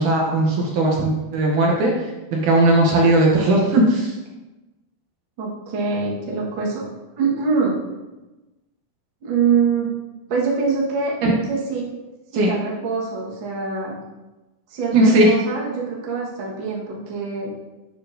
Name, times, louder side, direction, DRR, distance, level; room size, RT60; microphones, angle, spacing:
voice 1, 0.0-4.1 12.3-12.5 14.9-15.4, right 1 dB, 70° right, -2 dB, 2.1 m, -17 dB
voice 2, 5.4-6.8 7.2-7.8 9.2-9.9 10.3-11.1 11.5-11.8 12.5-14.0 14.7-17.5, right 5 dB, 55° right, -4 dB, 1.3 m, -24 dB
8.7 x 6.5 x 2.6 m, 1.1 s
omnidirectional pair, 4.3 m